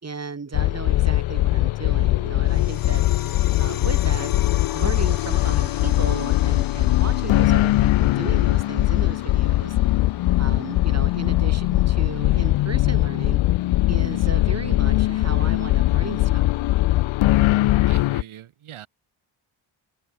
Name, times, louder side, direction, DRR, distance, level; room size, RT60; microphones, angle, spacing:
voice 1, 0.0-3.1 3.6-4.3 4.7-9.8 10.4-13.4 13.9-16.5, right 4 dB, 30° right, 3.2 m, -35 dB
sound 1, 0.5-18.2, left 16 dB, 70° left, 0.6 m, -20 dB
sound 2, 2.5-13.5, left 8 dB, 45° left, 1.3 m, -41 dB
voice 2, 17.8-18.9, right 11 dB, 75° right, 2.6 m, -41 dB
cardioid pair, 75°, 49 cm